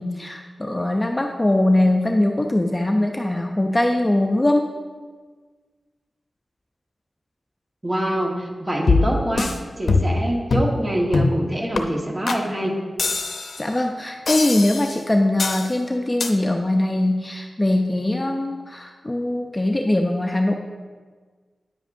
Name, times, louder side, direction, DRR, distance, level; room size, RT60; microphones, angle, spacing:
voice 1, 0.0-4.7 13.6-20.5, left 1 dB, 20° left, 3 dB, 0.5 m, -21 dB
voice 2, 7.8-9.5 9.8-12.8, equal, 25° right, 0 dB, 1.3 m, -24 dB
sound 1, 8.9-9.6 9.9-10.2 10.5-10.8 11.1-11.4 11.8-11.9 12.3-12.4 13.0-13.6 14.3-15.0 15.4-15.7 16.2-16.3, left 3 dB, 75° left, 0.6 m, -22 dB
9.8 x 7.8 x 2.6 m, 1.5 s
wide cardioid pair, 70°, 0 cm